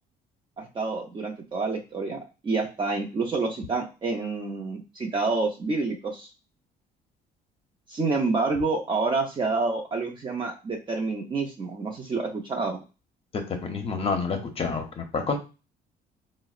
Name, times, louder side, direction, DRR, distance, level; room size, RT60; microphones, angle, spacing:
voice 1, 0.6-6.3 7.9-12.8, right 3 dB, 30° right, 0 dB, 0.5 m, -28 dB
voice 2, 13.5-15.4, left 4 dB, 35° left, 5 dB, 0.7 m, -28 dB
3.9 x 2.0 x 2.3 m, 0.31 s
cardioid pair, 110°, 17 cm